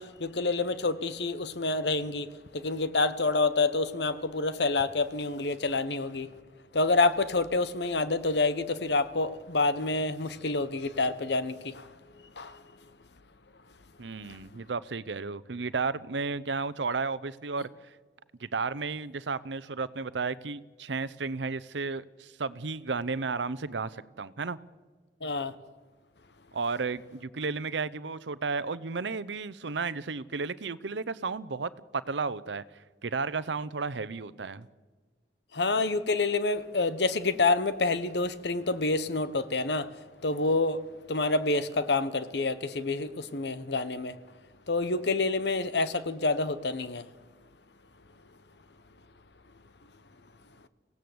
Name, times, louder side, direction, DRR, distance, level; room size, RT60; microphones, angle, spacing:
voice 1, 0.0-6.3 6.7-11.9 12.4-12.6 14.2-14.4 25.2-25.5 35.5-39.9 40.2-40.8 41.1-44.2 44.7-47.1, left 3 dB, 70° left, 1.1 m, -28 dB
voice 2, 14.0-17.7 18.4-24.6 26.5-32.6 33.0-34.7, right 4 dB, 90° right, 0.8 m, -33 dB
24.5 x 17.0 x 7.9 m
head